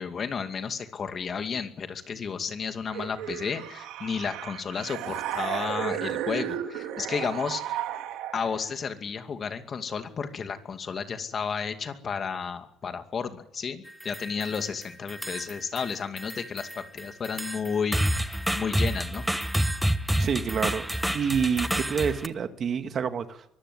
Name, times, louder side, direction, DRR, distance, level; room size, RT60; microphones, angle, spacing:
voice 1, 0.0-7.8 8.3-19.2, left 6 dB, 40° left, 7 dB, 2.4 m, -32 dB
sound 1, 2.9-8.7, right 11 dB, 85° right, 2.3 m, -34 dB
sound 2, 13.9-14.7 15.1-15.9 16.2-22.3, equal, 5° right, 1.2 m, -29 dB
voice 2, 20.2-20.9 21.1-23.4, right 7 dB, 45° right, 8 dB, 1.8 m, -28 dB
24.0 x 15.0 x 9.7 m, 0.78 s
cardioid pair, 110°, 0 cm